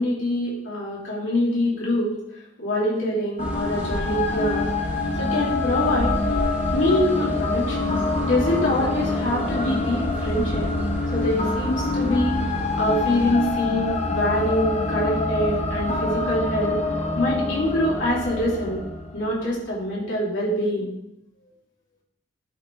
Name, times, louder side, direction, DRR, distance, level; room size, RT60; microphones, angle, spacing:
voice 1, 0.0-2.1 2.6-4.7 5.1-6.2 6.7-7.9 8.2-10.7 11.1-12.4 12.8-16.8 17.1-18.8 19.1-20.9, left 1 dB, 90° left, -6 dB, 3.1 m, -24 dB
sound 1, 3.4-19.6, left 3 dB, 35° left, 0.8 m, -26 dB
sound 2, 3.4-13.3, equal, 10° right, 1.1 m, -33 dB
11.0 x 3.8 x 4.5 m, 0.83 s
head